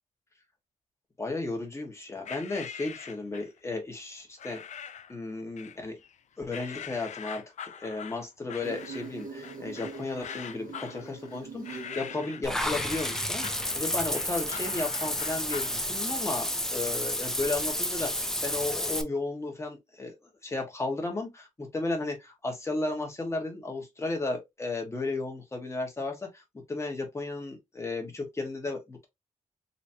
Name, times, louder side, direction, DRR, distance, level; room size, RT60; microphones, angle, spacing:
voice 1, 1.2-4.6 5.1-6.0 6.4-26.4 26.7-29.1, left 3 dB, 20° left, 1.5 m, -34 dB
sound 1, 2.3-3.6 4.4-5.2 5.6-6.2 6.5-15.8, left 8 dB, 60° left, 0.4 m, -43 dB
Insect, 8.6-13.6, right 4 dB, 75° right, 1.6 m, -44 dB
Water / Bathtub (filling or washing), 12.4-19.0, left 1 dB, 5° left, 0.6 m, -31 dB
4.1 x 3.1 x 2.9 m
wide cardioid pair, 155°, 14 cm